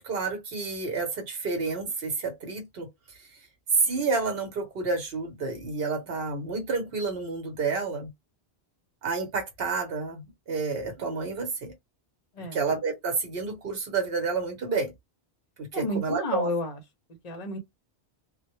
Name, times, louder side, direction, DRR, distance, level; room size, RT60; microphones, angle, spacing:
voice 1, 0.0-2.9 3.8-8.1 9.0-11.7 12.5-14.9 15.6-16.5, right 4 dB, 65° right, 1.0 m, -30 dB
voice 2, 15.7-16.8 17.2-17.6, left 1 dB, 45° left, 0.6 m, -31 dB
2.1 x 2.1 x 2.9 m
omnidirectional pair, 1.1 m